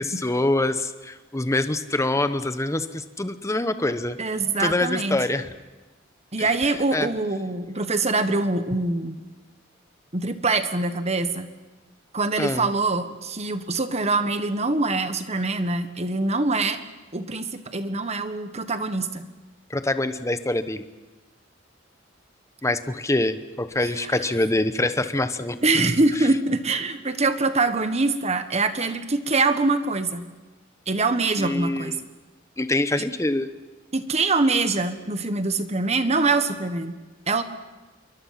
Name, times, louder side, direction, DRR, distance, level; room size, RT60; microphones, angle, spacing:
voice 1, 0.0-4.2 4.6-5.5 6.4-6.5 6.9-7.1 12.4-12.7 19.7-20.9 22.6-25.6 31.4-32.0 32.6-33.5, left 2 dB, 15° left, 11 dB, 1.0 m, -25 dB
voice 2, 4.2-5.2 6.3-9.2 10.1-11.5 12.1-16.8 17.1-19.2 24.0-24.1 25.6-30.3 30.9-32.0 33.9-37.0 37.3-37.4, right 3 dB, 35° right, 9 dB, 1.4 m, -24 dB
27.5 x 23.0 x 5.9 m, 1.2 s
head